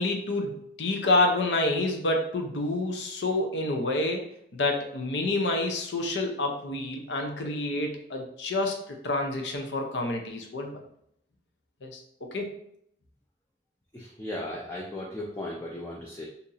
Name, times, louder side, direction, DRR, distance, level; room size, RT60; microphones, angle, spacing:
voice 1, 0.0-4.3 4.5-10.8 11.8-12.5, left 2 dB, 80° left, 2 dB, 0.6 m, -28 dB
voice 2, 13.9-16.3, left 1 dB, 15° left, -3 dB, 0.4 m, -36 dB
2.8 x 2.6 x 3.9 m, 0.71 s
head